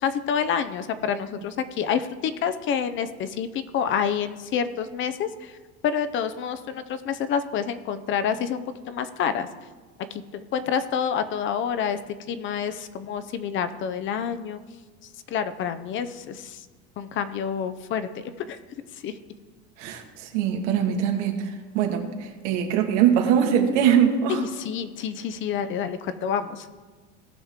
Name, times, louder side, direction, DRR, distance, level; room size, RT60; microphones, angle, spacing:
voice 1, 0.0-5.6 5.8-9.5 10.1-12.0 12.3-14.6 15.3-16.6 17.0-18.6 19.0-19.2 24.3-26.7, left 7 dB, 35° left, 11 dB, 0.5 m, -28 dB
voice 2, 19.8-21.4 21.7-22.0 22.4-24.4, right 8 dB, 85° right, 2 dB, 1.8 m, -22 dB
17.5 x 6.0 x 3.6 m, 1.3 s
cardioid pair, 145°, 35 cm